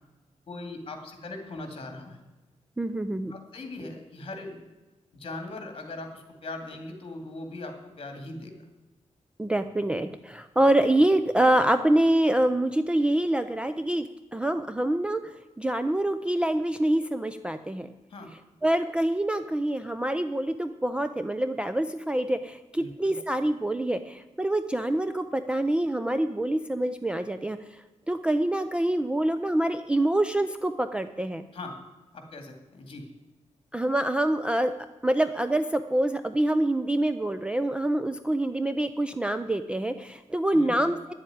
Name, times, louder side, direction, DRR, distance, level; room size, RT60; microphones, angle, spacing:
voice 1, 0.5-2.2 3.3-4.6 5.1-8.5 18.1-18.3 22.8-23.2 31.5-31.8 32.1-33.1 40.5-40.8, left 2 dB, 45° left, 5 dB, 2.3 m, -40 dB
voice 2, 2.8-3.3 9.4-15.2 15.6-17.9 18.6-27.6 28.1-31.4 33.7-34.7 35.0-41.1, right 1 dB, 10° right, 10 dB, 0.4 m, -26 dB
9.9 x 7.5 x 9.4 m, 1.2 s
wide cardioid pair, 170°, 12 cm